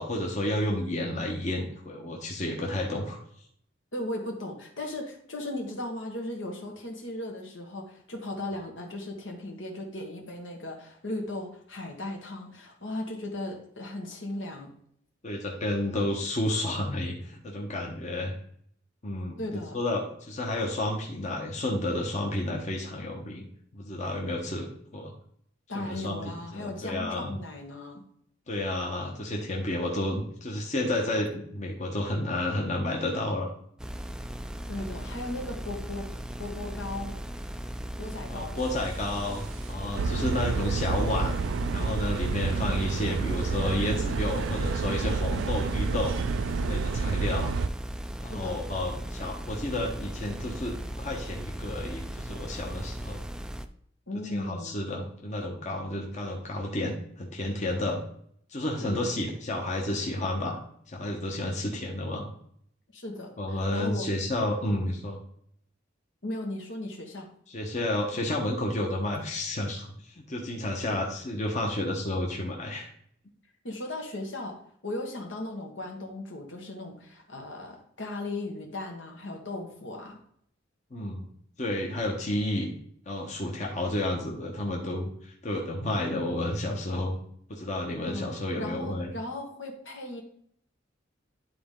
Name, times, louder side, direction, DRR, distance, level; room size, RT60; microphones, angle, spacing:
voice 1, 0.0-3.2 15.2-18.3 19.0-23.5 23.7-25.1 25.7-27.3 28.5-33.5 38.3-41.4 41.7-46.3 46.6-47.6 48.2-53.2 54.3-58.0 58.5-60.6 60.9-62.3 63.4-65.2 67.5-72.9 80.9-81.3 81.6-82.7 83.1-87.2 87.5-89.1, left 1 dB, 40° left, 0 dB, 1.1 m, -31 dB
voice 2, 3.9-14.7 19.4-19.8 25.7-28.0 34.7-36.1 36.4-37.2 38.0-38.6 40.0-40.4 48.3-48.6 54.1-54.7 58.8-59.1 62.9-64.1 66.2-67.3 73.6-74.5 74.8-80.2 88.1-88.3 88.6-90.2, left 1 dB, 75° left, 1 dB, 1.7 m, -37 dB
sound 1, 33.8-53.6, equal, 5° right, 0.4 m, -37 dB
sound 2, 38.7-39.1 39.5-39.6 40.0-47.7, right 4 dB, 85° right, 0.4 m, -29 dB
11.0 x 4.0 x 3.8 m, 0.65 s
head